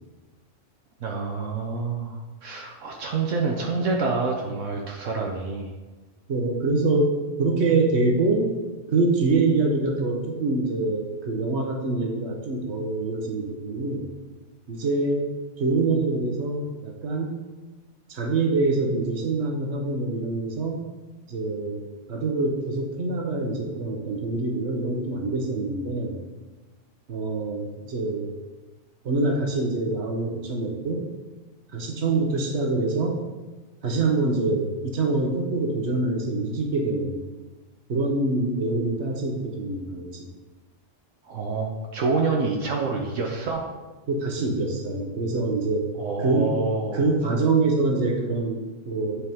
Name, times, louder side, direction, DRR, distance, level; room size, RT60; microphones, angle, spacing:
voice 1, 1.0-5.7 41.2-43.6 46.0-47.0, right 4 dB, 80° right, 0 dB, 1.2 m, -27 dB
voice 2, 6.3-8.5 8.9-14.1 14.7-15.3 15.6-17.4 18.1-20.8 21.3-21.8 22.1-26.2 27.1-28.3 29.0-31.0 31.7-33.2 33.8-37.2 37.9-40.3 44.1-45.9 46.2-46.5 46.9-49.3, right 3 dB, 60° right, 2 dB, 1.3 m, -25 dB
9.9 x 4.6 x 3.6 m, 1.2 s
omnidirectional pair, 1.3 m